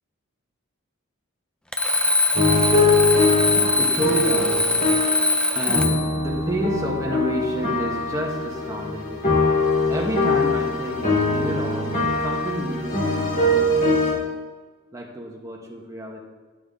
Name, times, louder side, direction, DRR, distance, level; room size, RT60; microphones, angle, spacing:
Alarm, 1.7-6.1, left 2 dB, 5° left, 0.6 m, -22 dB
sound 1, 2.4-5.4 5.7-14.1, left 2 dB, 40° left, 4.0 m, -22 dB
voice 1, 2.6-4.7 5.6-9.2 9.9-11.9 12.2-14.2 14.9-16.2, equal, 15° right, -1 dB, 1.6 m, -30 dB
13.5 x 9.1 x 3.9 m, 1.3 s
head